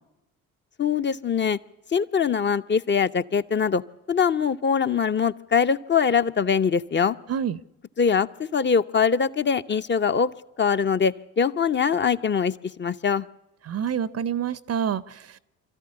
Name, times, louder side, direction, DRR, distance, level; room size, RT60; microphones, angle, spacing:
voice 1, 0.8-1.6 1.9-3.8 4.1-7.2 8.0-8.3 8.5-10.3 10.6-13.2, left 6 dB, 25° left, 12 dB, 0.8 m, -22 dB
voice 2, 7.3-7.6 13.6-15.4, right 8 dB, 35° right, 19 dB, 0.7 m, -27 dB
25.5 x 13.5 x 9.8 m, 0.97 s
hypercardioid pair, 60°, 41 cm